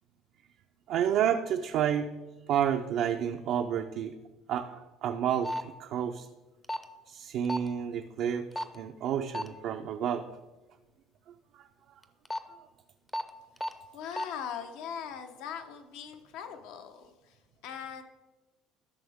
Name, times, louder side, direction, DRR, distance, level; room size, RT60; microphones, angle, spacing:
voice 1, 0.9-2.1 2.5-4.1 4.5-6.3 7.1-10.3 11.5-11.7, right 9 dB, 60° right, 5 dB, 0.5 m, -30 dB
sound 1, 5.4-5.6 6.6-6.8 7.5-7.7 8.6-8.8 9.3-9.5 12.0-12.4 13.1-13.2 13.6-13.7 14.1-14.3, left 1 dB, 10° left, 0.6 m, -32 dB
voice 2, 13.6-18.0, left 8 dB, 80° left, 6 dB, 0.9 m, -41 dB
13.0 x 6.2 x 3.6 m, 1.2 s
cardioid pair, 130°, 0 cm